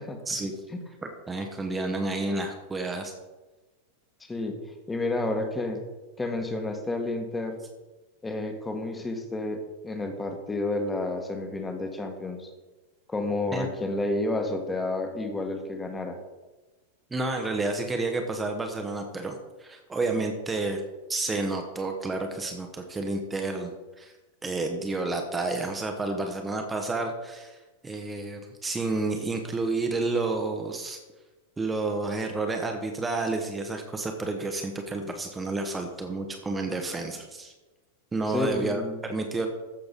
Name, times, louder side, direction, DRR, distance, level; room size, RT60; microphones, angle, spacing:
voice 1, 1.0-3.1 13.5-13.7 17.1-20.8 21.1-24.1 24.4-31.0 31.6-37.5 38.1-39.5, right 3 dB, 15° right, 3 dB, 1.2 m, -30 dB
voice 2, 4.2-4.6 4.9-5.8 6.2-7.6 8.2-12.5 13.1-16.2 38.3-39.0, left 2 dB, 10° left, 5 dB, 1.6 m, -30 dB
14.5 x 6.6 x 4.1 m, 1.2 s
figure-of-eight pair, 90°, 0 cm